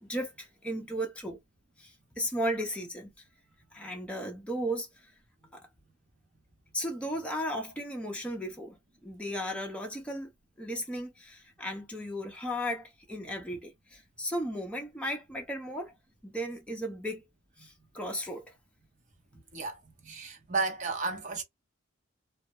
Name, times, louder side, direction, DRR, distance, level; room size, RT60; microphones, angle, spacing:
voice 1, 0.0-1.4 1.8-3.1 3.7-5.1 5.5-5.7 6.7-8.8 9.0-10.3 10.6-15.9 16.2-17.3 17.6-18.5, equal, 5° left, 0.6 m, -35 dB
voice 2, 19.3-19.8 20.0-21.4, right 4 dB, 40° right, 0.7 m, -33 dB
2.3 x 2.0 x 2.8 m
head